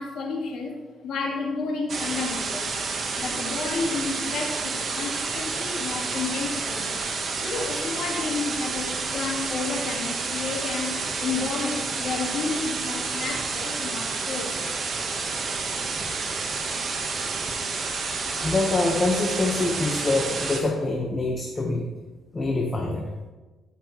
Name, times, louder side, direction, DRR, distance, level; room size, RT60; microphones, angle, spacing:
voice 1, 0.0-2.7 3.2-7.0 7.4-14.6 15.4-15.5, left 4 dB, 70° left, 0 dB, 1.9 m, -31 dB
sound 1, 1.9-20.6, right 4 dB, 50° right, 1.4 m, -29 dB
voice 2, 18.4-21.8 22.3-23.0, left 2 dB, 25° left, 0 dB, 1.3 m, -25 dB
13.0 x 6.6 x 3.2 m, 1.2 s
cardioid pair, 90°, 0 cm